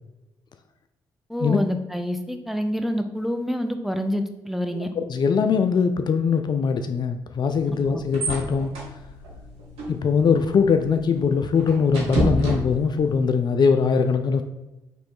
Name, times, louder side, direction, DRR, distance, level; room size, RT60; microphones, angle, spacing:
voice 1, 1.3-4.9, equal, ahead, 6 dB, 0.5 m, -27 dB
voice 2, 4.7-8.7 9.9-14.4, left 5 dB, 50° left, 8 dB, 0.3 m, -21 dB
sound 1, 7.5-13.2, equal, 80° right, 1.1 m, -31 dB
3.1 x 3.0 x 4.6 m, 0.99 s
hypercardioid pair, 45°, 10 cm